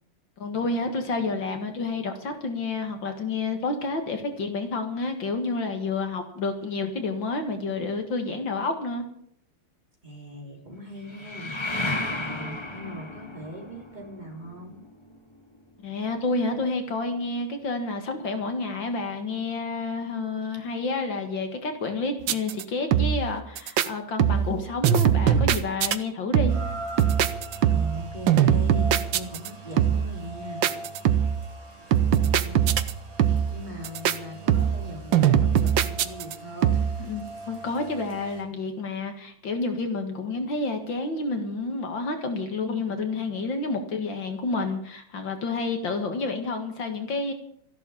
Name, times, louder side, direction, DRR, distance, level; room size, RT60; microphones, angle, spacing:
voice 1, 0.4-9.0 15.8-26.5 37.0-47.3, left 3 dB, 65° left, 6 dB, 2.4 m, -29 dB
sound 1, 0.8-3.5 11.0-16.6, left 2 dB, 15° left, 1.1 m, -36 dB
voice 2, 10.0-11.5 12.1-14.8 20.4-20.6 27.6-30.8 32.2-32.7 33.5-36.8, equal, 20° right, 0 dB, 3.7 m, -40 dB
sound 2, 22.2-22.6 22.9-23.3 23.6-23.9 24.2-24.6 24.8-26.0 26.3-26.7 27.0-28.0 28.3-29.5 29.8-30.2 30.6-31.4 31.9-32.9 33.2-33.6 33.8-34.2 34.5-34.9 35.1-36.3 36.6-37.0, right 9 dB, 70° right, 1.5 m, -21 dB
Rain, 26.5-38.4, right 2 dB, 40° right, 3.0 m, -41 dB
14.0 x 11.5 x 7.2 m, 0.65 s
omnidirectional pair, 2.3 m